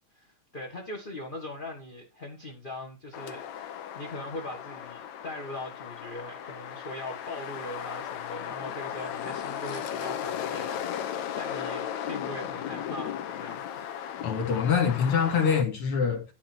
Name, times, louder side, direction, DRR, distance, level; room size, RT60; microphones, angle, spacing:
voice 1, 0.1-13.9, left 1 dB, 25° left, 1.3 m, -41 dB
sound 1, 3.1-15.6, left 9 dB, 80° left, 2.3 m, -36 dB
voice 2, 14.2-16.2, left 6 dB, 50° left, 2.7 m, -25 dB
12.0 x 4.2 x 4.5 m
omnidirectional pair, 3.3 m